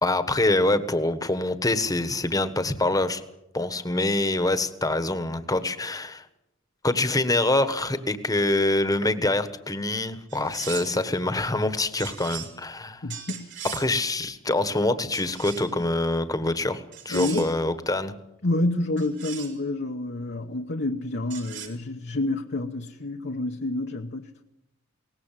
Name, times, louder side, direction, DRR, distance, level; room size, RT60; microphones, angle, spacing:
voice 1, 0.0-3.2 3.5-6.3 6.8-13.0 13.7-18.1, left 2 dB, 20° left, 1.4 m, -25 dB
sound 1, 10.3-11.0 12.0-12.5 13.1-13.9 15.1-15.8 16.9-17.6 19.0-19.6 21.3-21.7, right 9 dB, 60° right, 4.8 m, -39 dB
voice 2, 13.0-13.5 17.1-17.5 18.4-24.4, left 2 dB, 55° left, 1.1 m, -28 dB
22.0 x 19.0 x 7.6 m
head